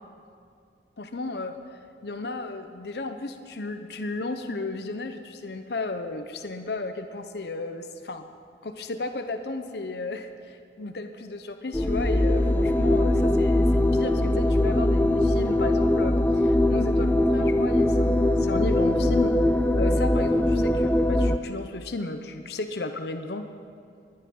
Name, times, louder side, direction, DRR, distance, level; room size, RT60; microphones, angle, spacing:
voice 1, 1.0-1.6 2.0-8.3 8.6-19.4 19.8-23.5, left 2 dB, 70° left, 7 dB, 0.8 m, -34 dB
sound 1, 11.7-21.4, left 1 dB, 10° left, 0.4 m, -22 dB
19.0 x 11.0 x 5.5 m, 2.3 s
head